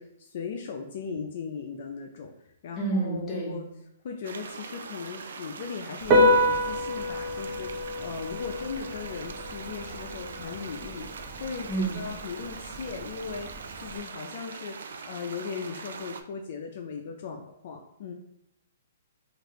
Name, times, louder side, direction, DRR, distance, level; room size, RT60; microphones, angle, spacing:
voice 1, 0.0-3.6 4.0-18.1, left 5 dB, 55° left, 2 dB, 0.3 m, -38 dB
voice 2, 2.8-3.6 11.7-11.9, right 3 dB, 10° left, -4 dB, 1.2 m, -28 dB
sound 1, 4.2-16.2, right 5 dB, 70° right, 0.3 m, -42 dB
Piano, 6.0-14.0, left 1 dB, 30° right, 0.6 m, -28 dB
3.1 x 2.5 x 3.0 m, 0.79 s
hypercardioid pair, 135°, 0 cm